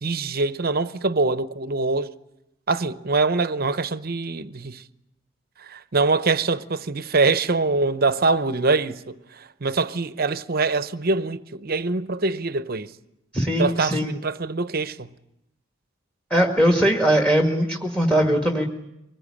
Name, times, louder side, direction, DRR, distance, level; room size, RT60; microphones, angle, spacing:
voice 1, 0.0-2.1 2.7-4.8 5.6-12.9 13.6-15.1, right 3 dB, 45° right, 0.8 m, -24 dB
voice 2, 13.3-14.1 16.3-18.6, equal, 5° left, 1.7 m, -20 dB
24.5 x 21.0 x 8.6 m
head